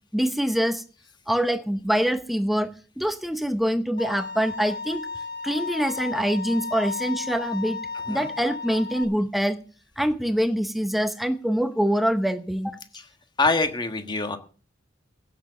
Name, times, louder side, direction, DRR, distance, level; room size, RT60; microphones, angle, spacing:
voice 1, 0.1-0.8 1.3-2.7 3.0-5.0 5.4-7.8 8.1-9.6 10.0-12.8, equal, ahead, 10 dB, 0.8 m, -24 dB
Bowed string instrument, 4.0-9.0, left 4 dB, 55° left, 3.3 m, -34 dB
voice 2, 13.4-14.4, left 3 dB, 25° left, 7 dB, 1.4 m, -24 dB
16.5 x 7.1 x 6.7 m, 0.39 s
head